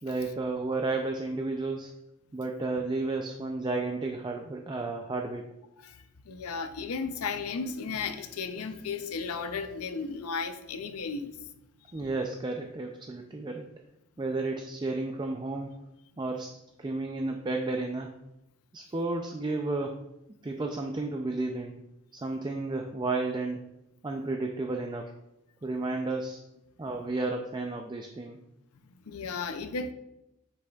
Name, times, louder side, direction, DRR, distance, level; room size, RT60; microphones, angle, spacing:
voice 1, 0.0-1.9 2.3-5.4 11.9-13.7 14.2-15.7 16.2-18.1 18.7-20.0 20.4-21.8 22.1-23.6 24.0-25.1 25.6-26.4 26.8-28.4, right 3 dB, 20° right, 3 dB, 0.4 m, -32 dB
voice 2, 5.8-11.3 29.1-29.9, left 5 dB, 90° left, 9 dB, 0.6 m, -34 dB
7.8 x 6.0 x 2.3 m, 0.89 s
head